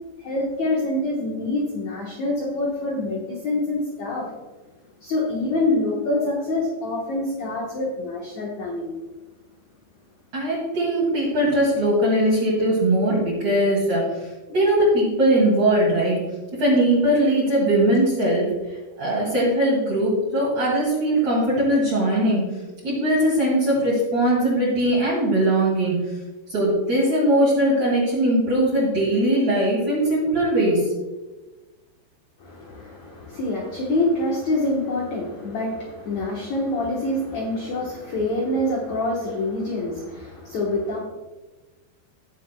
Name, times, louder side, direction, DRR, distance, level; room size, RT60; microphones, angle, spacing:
voice 1, 0.2-4.3 5.0-8.9 32.4-41.0, left 2 dB, 75° left, -2 dB, 1.6 m, -26 dB
voice 2, 10.3-16.2 16.6-18.5 19.0-22.4 22.8-25.9 26.5-30.9, right 1 dB, 45° right, -7 dB, 3.1 m, -20 dB
17.5 x 7.2 x 2.2 m, 1.2 s
omnidirectional pair, 5.1 m